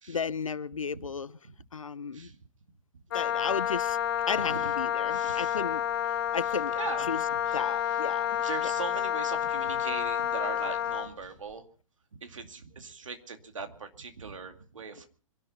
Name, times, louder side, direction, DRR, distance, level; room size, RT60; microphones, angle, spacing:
voice 1, 0.1-1.4 1.7-2.3 3.1-4.0 4.3-5.8 6.3-6.7 7.1-7.2 7.5-8.4 8.6-8.7, left 5 dB, 75° left, 19 dB, 0.8 m, -34 dB
Wind instrument woodwind instrument, 3.1-11.1, left 10 dB, 45° left, 1.0 m, -29 dB
voice 2, 4.3-4.7 5.1-5.6 6.8-7.2 7.5-7.6 7.9-8.0 8.4-11.6 12.1-15.1, right 5 dB, 70° right, 6 dB, 2.4 m, -40 dB
25.5 x 11.5 x 4.3 m, 0.43 s
figure-of-eight pair, 120°, 17 cm